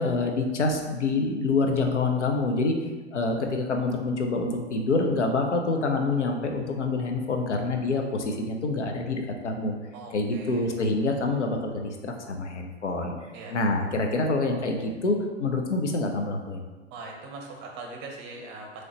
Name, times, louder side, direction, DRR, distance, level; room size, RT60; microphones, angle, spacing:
voice 1, 0.0-2.7 3.1-9.7 10.1-13.1 13.5-16.6, left 3 dB, 90° left, 3 dB, 0.6 m, -26 dB
voice 2, 9.9-10.9 13.3-13.6 16.9-18.8, right 3 dB, 35° right, 2 dB, 0.7 m, -41 dB
3.8 x 3.2 x 2.9 m, 1.3 s
figure-of-eight pair, 100°, 34 cm